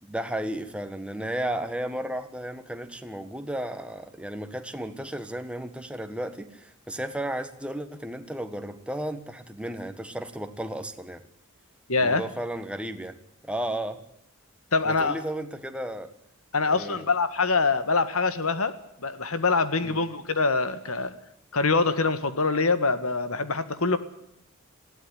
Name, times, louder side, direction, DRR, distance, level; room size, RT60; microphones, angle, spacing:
voice 1, 0.0-11.2 12.0-13.1 13.4-14.0 14.8-16.1 16.7-17.0 19.8-20.0, right 1 dB, 5° right, 8 dB, 1.6 m, -34 dB
voice 2, 11.9-12.2 14.7-15.2 16.5-21.1 21.5-24.0, left 4 dB, 70° left, 12 dB, 1.8 m, -24 dB
21.0 x 16.0 x 9.9 m, 0.75 s
head